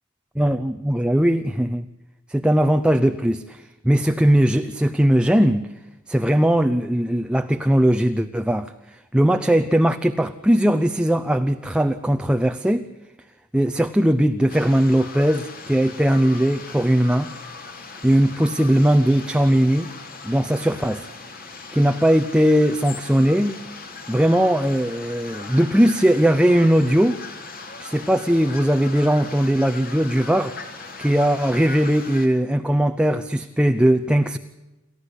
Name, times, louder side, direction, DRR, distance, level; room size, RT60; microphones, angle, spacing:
voice 1, 0.4-1.9 2.3-5.7 6.1-12.9 13.5-17.3 18.0-19.9 20.2-21.1 21.7-23.6 24.1-27.2 27.8-30.6 31.0-34.4, equal, 5° right, 7 dB, 0.7 m, -19 dB
sound 1, 14.5-32.3, left 4 dB, 45° left, 3.3 m, -39 dB
28.5 x 13.5 x 8.2 m, 1.0 s
head